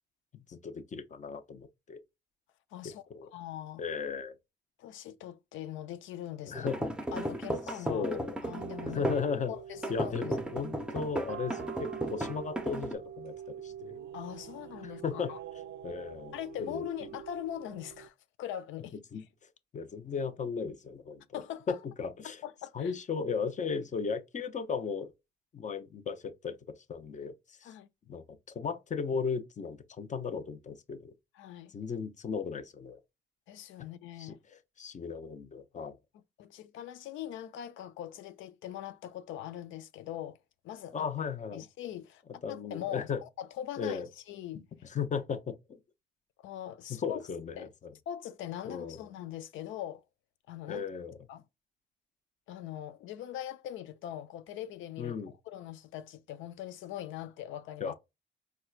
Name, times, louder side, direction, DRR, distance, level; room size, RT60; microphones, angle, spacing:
voice 1, 0.3-2.0 3.1-3.3 3.8-4.3 6.4-6.9 7.9-8.4 8.8-9.5 9.9-14.0 14.8-15.3 15.8-16.3 16.6-16.9 19.1-19.2 19.7-21.4 21.7-22.4 22.7-25.1 25.5-26.6 26.9-27.3 27.6-27.7 28.1-31.1 31.7-33.0 33.8-33.9 34.2-36.0 40.9-41.6 42.4-43.2 43.8-44.1 44.9-45.8 46.9-47.9 48.6-49.0 50.7-51.2 55.0-55.3 57.8-57.9, left 6 dB, 40° left, 0.6 m, -36 dB
voice 2, 2.7-3.8 4.8-6.7 7.1-8.1 8.4-9.1 9.5-10.3 14.1-15.4 16.3-18.9 21.3-21.8 22.2-22.9 27.6-27.9 31.3-31.7 33.5-34.4 36.1-40.4 40.6-41.0 41.5-42.2 42.5-44.6 46.4-47.2 47.6-47.7 48.1-50.0 50.5-50.8 51.3-51.4 52.5-55.2 55.5-57.9, left 11 dB, 80° left, 0.4 m, -41 dB
sound 1, 6.5-9.3 9.8-12.9, right 1 dB, 5° right, 0.6 m, -35 dB
sound 2, 8.5-18.1, right 9 dB, 60° right, 0.4 m, -45 dB
4.2 x 2.3 x 2.4 m
cardioid pair, 90°, 20 cm